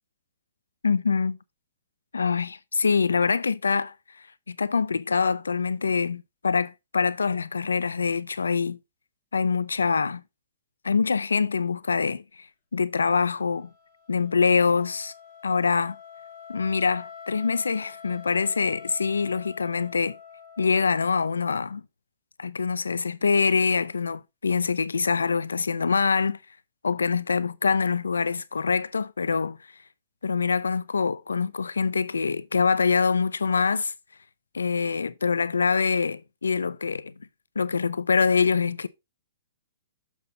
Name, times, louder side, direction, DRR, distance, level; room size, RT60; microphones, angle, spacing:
voice 1, 0.8-1.4 2.1-3.9 4.5-8.8 9.3-10.2 10.8-12.5 12.7-13.7 14.1-15.1 15.4-16.0 16.5-20.2 20.6-21.8 22.4-26.4 26.8-29.6 30.2-33.9 34.5-37.1 37.6-38.9, left 5 dB, 90° left, 0.5 m, -24 dB
Wind instrument woodwind instrument, 13.4-21.4, left 7 dB, 45° left, 2.5 m, -46 dB
7.2 x 5.7 x 3.9 m
hypercardioid pair, 130°, 0 cm